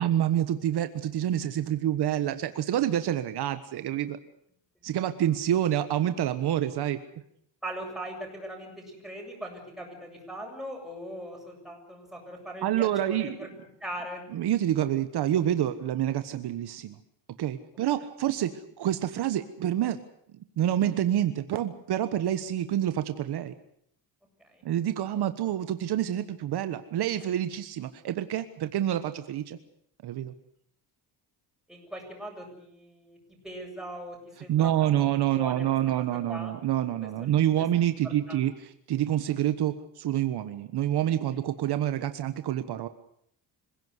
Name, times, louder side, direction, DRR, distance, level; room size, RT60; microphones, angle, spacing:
voice 1, 0.0-4.2 4.8-7.0 12.6-13.4 14.3-17.0 17.4-20.0 20.6-23.5 24.6-29.6 30.0-30.3 34.5-42.9, right 11 dB, 65° right, 10 dB, 1.4 m, -27 dB
voice 2, 7.6-13.5 13.8-14.2 24.4-24.6 31.7-33.2 33.4-35.7 36.0-36.5 37.2-37.3 38.0-38.4, right 1 dB, ahead, 0 dB, 7.8 m, -40 dB
26.0 x 17.0 x 8.1 m, 0.70 s
cardioid pair, 145°, 43 cm